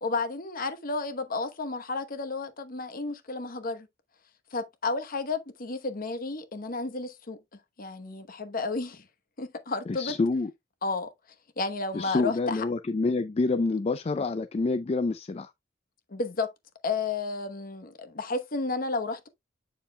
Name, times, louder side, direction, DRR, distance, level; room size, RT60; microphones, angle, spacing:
voice 1, 0.0-3.9 4.5-7.4 7.8-9.1 9.4-10.1 10.8-11.1 11.6-12.6 16.1-16.5 16.8-19.3, left 3 dB, 45° left, 1.0 m, -32 dB
voice 2, 9.9-10.5 11.9-15.5, left 3 dB, 30° left, 0.4 m, -27 dB
7.3 x 6.7 x 2.2 m
head